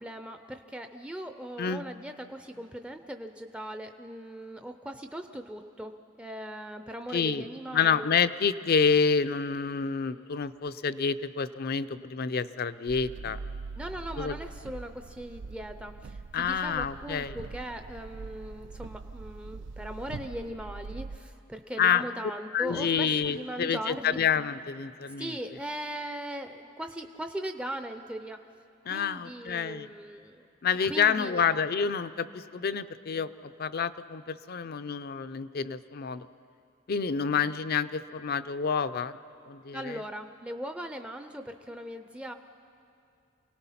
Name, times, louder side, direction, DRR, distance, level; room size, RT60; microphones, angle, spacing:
voice 1, 0.0-5.9 6.2-8.1 13.8-24.2 25.2-28.4 28.9-30.5 30.8-31.4 39.7-42.3, right 1 dB, 5° right, 7 dB, 0.5 m, -39 dB
voice 2, 7.1-7.4 7.7-13.4 14.2-14.4 16.3-17.4 21.8-22.1 22.5-25.3 28.9-29.9 30.6-36.3 36.9-39.2 39.5-40.0, left 6 dB, 50° left, 12 dB, 0.5 m, -28 dB
sound 1, 12.9-21.2, right 4 dB, 65° right, 0.4 m, -42 dB
28.5 x 18.5 x 5.7 m, 2.5 s
head